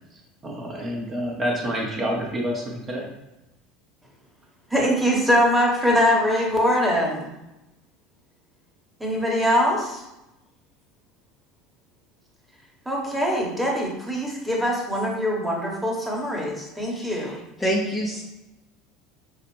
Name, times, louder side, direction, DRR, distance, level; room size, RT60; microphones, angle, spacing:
voice 1, 0.4-3.1, equal, 25° right, -1 dB, 0.9 m, -28 dB
voice 2, 4.7-7.3 9.0-10.0 12.8-17.3, equal, 5° right, -2 dB, 1.2 m, -22 dB
voice 3, 16.9-18.2, equal, 10° left, -3 dB, 0.7 m, -27 dB
5.6 x 2.5 x 3.2 m, 0.96 s
figure-of-eight pair, 70°, 0 cm